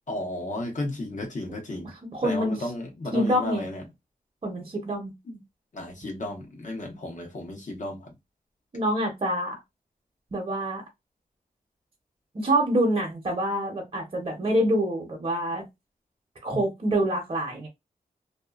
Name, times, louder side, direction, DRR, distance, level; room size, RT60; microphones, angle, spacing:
voice 1, 0.1-1.9 2.2-3.8 5.3-5.4 5.7-8.1 16.5-16.6, left 1 dB, 55° left, 1.0 m, -34 dB
voice 2, 1.8-2.7 3.1-3.7 4.4-5.1 8.7-9.6 10.3-10.8 12.3-15.6 16.4-17.7, right 1 dB, 40° right, 0.8 m, -26 dB
2.7 x 2.3 x 2.4 m
wide cardioid pair, 95°, 15 cm